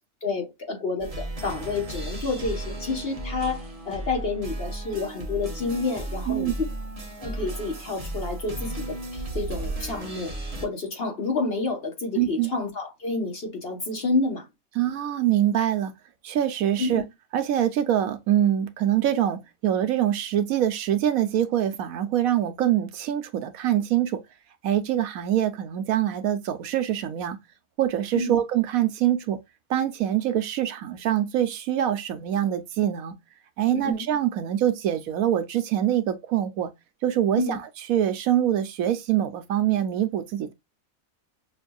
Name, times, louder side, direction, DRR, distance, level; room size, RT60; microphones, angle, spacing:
voice 1, 0.2-6.5 7.2-10.3 10.6-14.5 16.8-17.1 28.1-28.4 33.7-34.0 37.4-37.6, left 3 dB, 45° left, 1.3 m, -29 dB
sound 1, 1.0-10.7, right 2 dB, 30° right, 0.9 m, -34 dB
voice 2, 12.2-12.5 14.8-15.9 16.2-17.0 17.3-24.2 24.6-27.4 27.8-29.4 29.7-33.2 33.6-36.7 37.0-37.6 37.9-40.5, right 11 dB, 75° right, 1.1 m, -24 dB
6.1 x 2.6 x 2.2 m
omnidirectional pair, 1.5 m